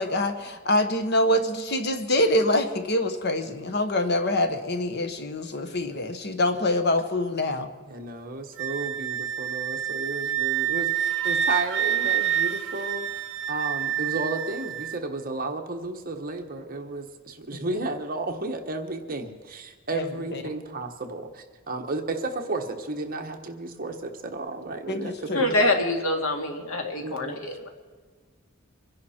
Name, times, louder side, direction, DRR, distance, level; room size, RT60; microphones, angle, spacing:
voice 1, 0.0-7.7 17.5-17.6 19.9-20.0 24.9-25.4, left 1 dB, 50° left, 8 dB, 1.1 m, -25 dB
voice 2, 7.9-13.2 13.5-25.7 27.0-27.4, right 2 dB, 45° right, 4 dB, 1.3 m, -33 dB
Wind instrument woodwind instrument, 8.6-15.0, right 10 dB, 60° right, 0.6 m, -27 dB
voice 3, 25.3-27.7, left 2 dB, 75° left, 3 dB, 2.2 m, -25 dB
24.5 x 10.5 x 4.4 m, 1.4 s
head